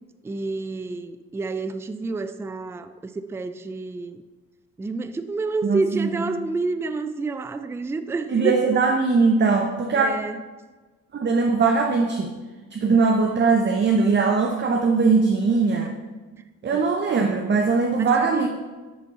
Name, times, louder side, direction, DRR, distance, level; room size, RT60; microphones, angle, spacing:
voice 1, 0.2-4.2 4.8-8.6 9.9-10.4 16.7-16.8 18.0-18.5, right 3 dB, 10° right, 11 dB, 0.3 m, -29 dB
voice 2, 5.6-6.1 8.3-10.1 11.1-12.3 12.7-15.9 16.6-18.5, right 4 dB, 35° right, 3 dB, 0.7 m, -20 dB
10.0 x 4.1 x 4.1 m, 1.3 s
cardioid pair, 90°, 30 cm